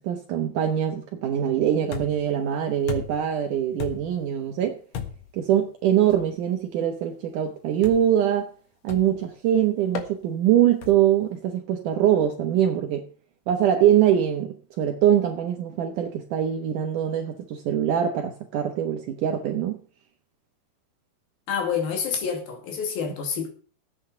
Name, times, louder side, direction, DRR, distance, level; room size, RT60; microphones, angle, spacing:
voice 1, 0.0-4.8 5.3-8.5 8.8-13.1 13.5-19.8, right 10 dB, 70° right, 2.3 m, -23 dB
sound 1, 1.9-2.3 2.9-3.3 3.8-4.2 4.9-5.4 6.1-6.3 7.8-8.2 8.9-9.2 9.9-10.1 10.8-11.2, left 7 dB, 55° left, 2.3 m, -35 dB
voice 2, 21.5-23.5, left 6 dB, 85° left, 4.4 m, -28 dB
14.0 x 8.9 x 5.7 m
omnidirectional pair, 4.2 m